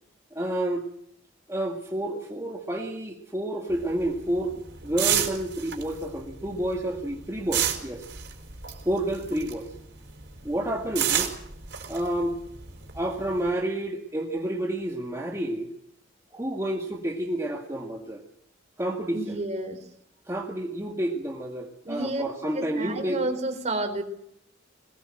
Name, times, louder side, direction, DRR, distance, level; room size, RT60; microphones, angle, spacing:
voice 1, 0.3-0.9 1.5-8.1 8.9-9.7 10.4-11.3 11.9-12.4 12.9-15.7 16.3-18.2 18.8-19.4 20.3-23.2, right 1 dB, 15° right, 0 dB, 1.9 m, -30 dB
sound 1, 3.7-9.8 10.1-13.5, right 10 dB, 65° right, 4.8 m, -30 dB
voice 2, 19.1-19.8 21.8-22.2 22.5-24.0, right 2 dB, 35° right, 6 dB, 4.2 m, -30 dB
21.5 x 19.5 x 7.7 m, 0.72 s
head